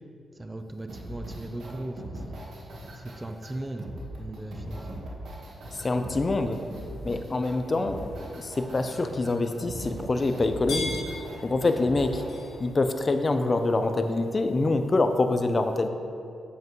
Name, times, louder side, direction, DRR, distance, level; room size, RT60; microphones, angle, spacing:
voice 1, 0.4-2.5 2.9-3.9 4.2-4.9, right 1 dB, 20° right, 6 dB, 0.5 m, -38 dB
sound 1, 0.9-12.3, right 1 dB, 75° right, 1.4 m, -40 dB
sound 2, 4.6-14.3, left 2 dB, 85° left, 1.8 m, -44 dB
voice 2, 5.8-6.6 7.0-8.1 8.3-11.0 11.4-12.2 12.6-15.9, left 2 dB, 35° left, 7 dB, 0.6 m, -25 dB
8.0 x 7.5 x 3.1 m, 2.5 s
cardioid pair, 80°, 0 cm